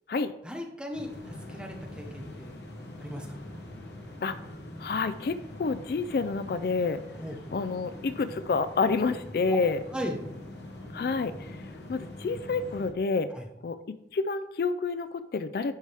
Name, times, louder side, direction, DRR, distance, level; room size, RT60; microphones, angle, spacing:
voice 1, 0.4-2.5 3.0-3.4 7.2-7.3 9.9-10.2 13.3-13.5, equal, 5° right, 2 dB, 0.9 m, -37 dB
sound 1, 0.9-12.9, left 1 dB, 85° left, 1.3 m, -43 dB
voice 2, 4.8-7.0 7.5-9.8 10.9-11.6 11.9-13.3 13.6-13.8 14.1-15.7, left 4 dB, 55° left, 12 dB, 0.3 m, -28 dB
11.0 x 4.8 x 3.4 m, 0.83 s
head